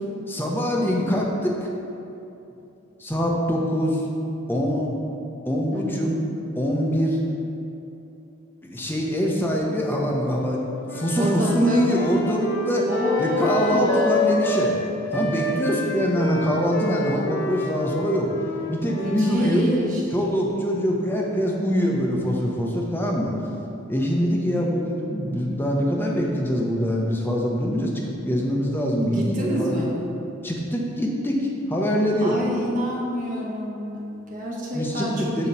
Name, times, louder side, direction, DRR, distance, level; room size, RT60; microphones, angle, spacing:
voice 1, 0.3-1.7 3.0-4.0 4.5-4.9 5.4-6.1 6.6-7.2 8.6-10.6 10.9-12.9 13.2-14.8 15.1-18.3 18.7-19.7 20.1-23.3 23.9-29.9 30.4-32.4 34.7-35.5, equal, 10° left, -2 dB, 0.7 m, -24 dB
voice 2, 5.7-6.1 11.1-12.1 12.8-14.2 18.9-20.0 29.0-29.9 32.2-35.5, equal, 40° right, -4 dB, 1.0 m, -27 dB
Wind instrument woodwind instrument, 10.8-14.7 15.1-19.5, left 2 dB, 55° left, 0.6 m, -28 dB
8.2 x 3.0 x 5.3 m, 2.9 s
head